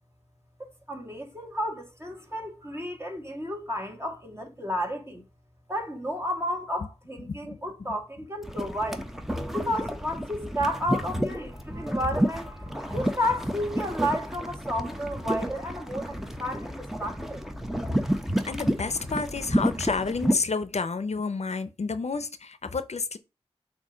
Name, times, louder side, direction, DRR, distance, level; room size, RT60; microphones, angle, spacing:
voice 1, 0.6-5.2 5.7-9.0 9.5-17.4, equal, 25° right, 1.9 m, -32 dB
voice 2, 7.3-7.6 18.5-23.2, left 4 dB, 70° left, 0.6 m, -30 dB
sound 1, 8.4-20.3, equal, 5° right, 0.9 m, -30 dB
6.9 x 2.8 x 5.0 m
wide cardioid pair, 50°, 11 cm